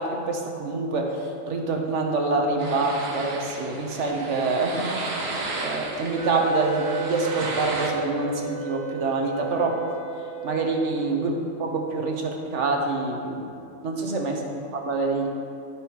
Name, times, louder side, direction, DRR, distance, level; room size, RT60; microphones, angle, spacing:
voice 1, 0.0-5.2 5.6-9.8 10.4-13.5 13.8-15.3, right 3 dB, 65° right, 2 dB, 1.3 m, -26 dB
sound 1, 2.6-7.9, right 2 dB, 80° right, 1.5 m, -34 dB
Wind instrument woodwind instrument, 6.2-11.3, right 7 dB, 5° right, 1.3 m, -34 dB
12.0 x 9.0 x 3.0 m, 2.5 s
omnidirectional pair, 1.4 m